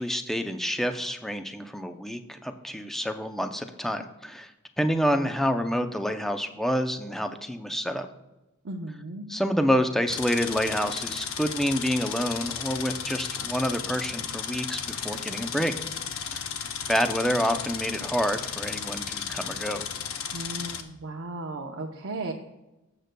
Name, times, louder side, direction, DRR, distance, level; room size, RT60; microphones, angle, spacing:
voice 1, 0.0-4.5 4.8-8.1 9.3-15.7 16.3-16.4 16.9-19.9, equal, ahead, 7 dB, 0.4 m, -28 dB
voice 2, 8.6-9.3 20.3-22.3, right 2 dB, 65° right, 0 dB, 0.7 m, -35 dB
sound 1, 10.1-20.8, left 7 dB, 70° left, 0.7 m, -34 dB
16.5 x 6.7 x 2.2 m, 0.99 s
head